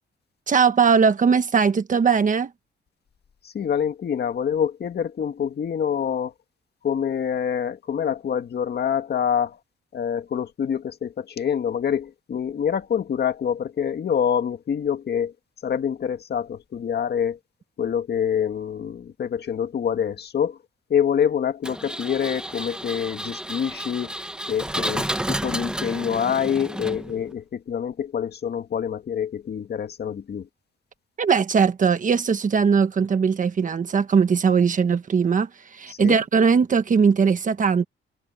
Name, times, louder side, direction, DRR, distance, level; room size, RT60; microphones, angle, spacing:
voice 1, 0.5-2.5 31.2-37.8, right 6 dB, 40° right, 1.3 m, -20 dB
voice 2, 3.5-6.3 6.8-9.6 9.9-15.3 15.6-17.4 17.8-20.6 20.9-24.1 24.5-30.5 35.9-36.2, left 8 dB, 50° left, 1.9 m, -26 dB
Engine, 21.6-27.3, right 1 dB, 5° right, 1.0 m, -31 dB
wide cardioid pair, 150°, 21 cm